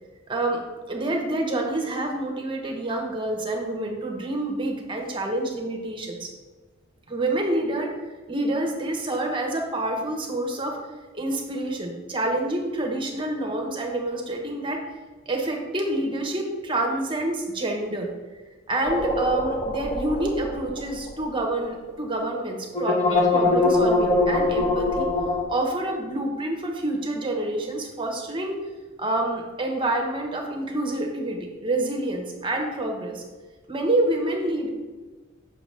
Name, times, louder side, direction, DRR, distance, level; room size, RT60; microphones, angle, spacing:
voice 1, 0.3-0.6 0.9-6.3 7.1-7.9 8.3-10.8 11.1-14.8 15.3-18.1 18.7-25.1 25.5-28.6 29.0-33.2 33.7-34.7, right 1 dB, 25° right, 1 dB, 0.8 m, -27 dB
sound 1, 18.8-21.4 21.6-21.7 22.7-25.4, left 2 dB, 35° left, 1.2 m, -23 dB
6.8 x 5.8 x 3.2 m, 1.3 s
head